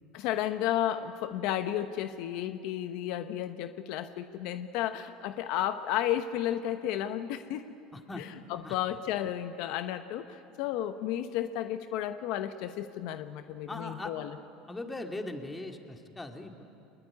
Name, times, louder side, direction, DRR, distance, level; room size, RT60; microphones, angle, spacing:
voice 1, 0.1-7.6 8.2-14.4, left 11 dB, 70° left, 9 dB, 1.0 m, -33 dB
voice 2, 7.9-8.2 8.6-8.8 13.7-14.1 14.7-16.6, left 2 dB, 15° left, 4 dB, 2.6 m, -39 dB
24.0 x 20.5 x 9.9 m, 2.6 s
supercardioid pair, 100°, 0 cm